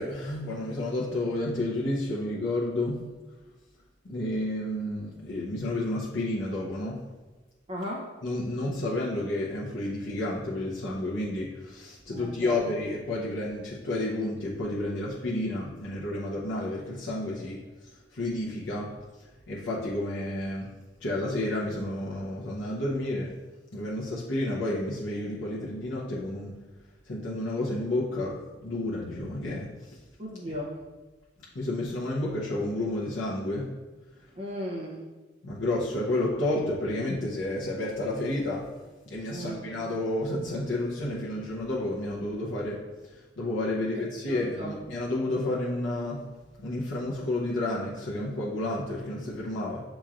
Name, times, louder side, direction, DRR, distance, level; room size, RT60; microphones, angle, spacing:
voice 1, 0.0-3.1 4.1-7.0 8.2-17.6 18.1-18.9 19.5-20.7 21.0-23.3 23.7-26.6 27.1-30.0 31.5-33.7 35.4-38.7 39.1-46.3 46.6-49.8, left 1 dB, 80° left, -6 dB, 0.7 m, -31 dB
voice 2, 7.7-8.1 12.1-12.6 30.2-30.8 34.4-35.0 36.3-36.5 39.3-39.7 43.8-44.8, equal, 30° right, -2 dB, 0.6 m, -37 dB
6.9 x 3.0 x 2.5 m, 1.2 s
head